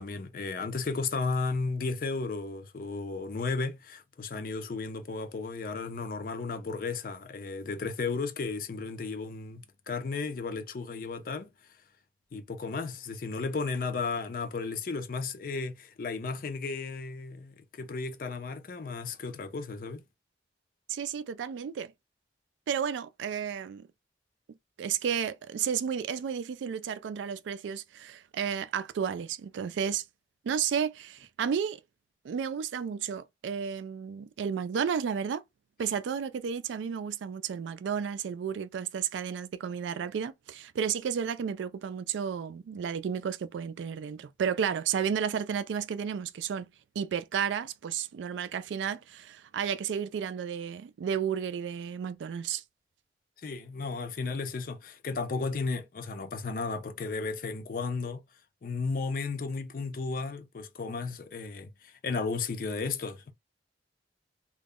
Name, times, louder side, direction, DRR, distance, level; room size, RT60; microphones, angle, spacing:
voice 1, 0.0-11.5 12.3-20.0 53.4-58.2 58.6-63.3, left 4 dB, 50° left, 0.4 m, -34 dB
voice 2, 20.9-21.9 22.7-23.9 24.8-30.0 30.4-31.8 32.2-35.4 35.8-46.7 47.0-52.6, right 7 dB, 85° right, 0.3 m, -32 dB
2.2 x 2.0 x 3.5 m
head